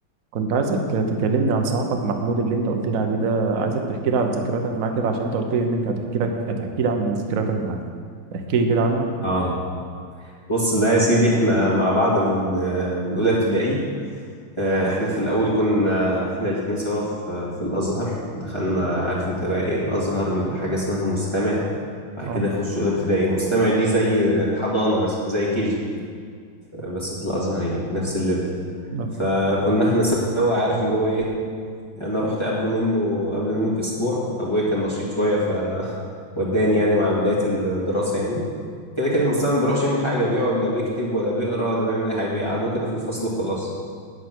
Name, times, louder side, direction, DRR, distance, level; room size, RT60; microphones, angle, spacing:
voice 1, 0.3-7.8 8.3-9.1 22.2-22.5 28.9-29.1, right 3 dB, 50° right, 4 dB, 1.1 m, -23 dB
voice 2, 9.2-9.6 10.5-13.8 14.6-21.6 22.2-25.8 26.7-28.5 29.2-31.3 32.0-35.9 36.3-38.4 39.0-43.7, equal, 15° left, -7 dB, 1.8 m, -22 dB
9.4 x 8.1 x 6.1 m, 2.1 s
omnidirectional pair, 2.4 m